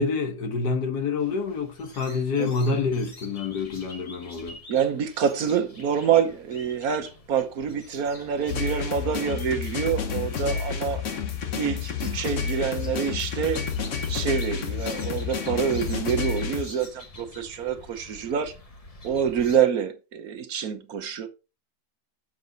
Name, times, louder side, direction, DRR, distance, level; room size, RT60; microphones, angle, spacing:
voice 1, 0.0-4.6, left 4 dB, 80° left, 1.9 m, -27 dB
sound 1, 1.2-19.6, left 2 dB, 25° left, 1.0 m, -47 dB
voice 2, 2.4-2.8 4.7-11.0 11.5-13.6 14.1-18.5 19.0-21.3, right 8 dB, 65° right, 1.4 m, -26 dB
sound 2, 8.5-16.6, left 6 dB, 55° left, 1.3 m, -30 dB
7.5 x 6.6 x 3.9 m
omnidirectional pair, 1.7 m